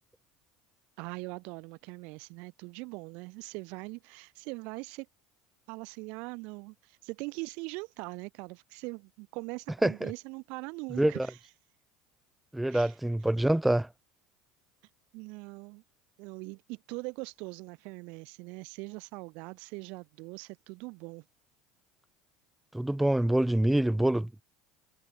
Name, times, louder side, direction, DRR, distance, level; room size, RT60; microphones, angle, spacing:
voice 1, 1.0-5.1 5.7-11.4 12.7-12.9 15.1-15.8 16.2-21.2, right 28 dB, 65° right, 0.8 m, -41 dB
voice 2, 12.5-13.9 22.7-24.3, right 1 dB, 5° right, 0.3 m, -25 dB
hypercardioid pair, 90°, 2 cm